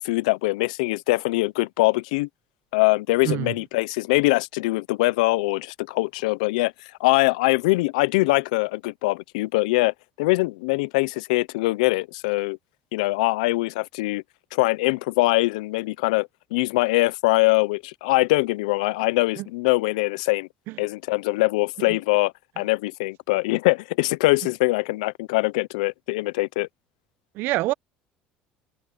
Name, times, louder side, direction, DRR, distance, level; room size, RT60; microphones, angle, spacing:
voice 1, 0.0-2.3 2.7-6.7 7.0-12.6 12.9-14.2 14.5-20.5 20.8-26.7, left 22 dB, 90° left, 0.5 m, -23 dB
voice 2, 27.3-27.7, right 17 dB, 70° right, 0.9 m, -25 dB
supercardioid pair, 80°, 4 cm